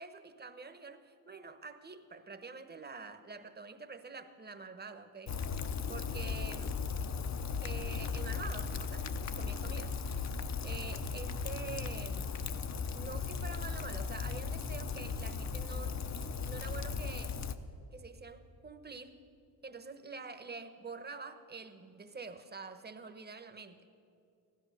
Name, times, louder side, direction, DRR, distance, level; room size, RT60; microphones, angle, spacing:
voice 1, 0.0-5.4 5.9-6.8 7.6-10.3 10.6-12.3 12.9-16.0 16.4-19.2 19.6-23.8, right 4 dB, 20° right, 9 dB, 1.1 m, -46 dB
Rain, 5.3-17.6, left 5 dB, 40° left, 0.8 m, -37 dB
15.5 x 12.5 x 6.6 m, 2.6 s
cardioid pair, 80°, 45 cm